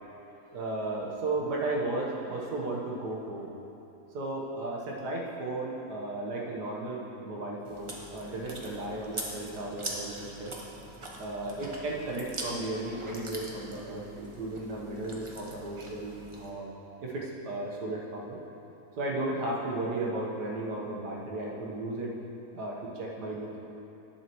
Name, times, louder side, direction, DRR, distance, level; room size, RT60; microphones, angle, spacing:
voice 1, 0.5-3.5 4.1-10.6 11.2-16.7 17.0-18.4 19.0-22.1 22.5-23.6, right 2 dB, 85° right, -3 dB, 1.8 m, -34 dB
Chewing mastication, 7.6-16.5, right 1 dB, 30° right, 0.6 m, -42 dB
11.0 x 7.7 x 3.0 m, 2.9 s
omnidirectional pair, 1.7 m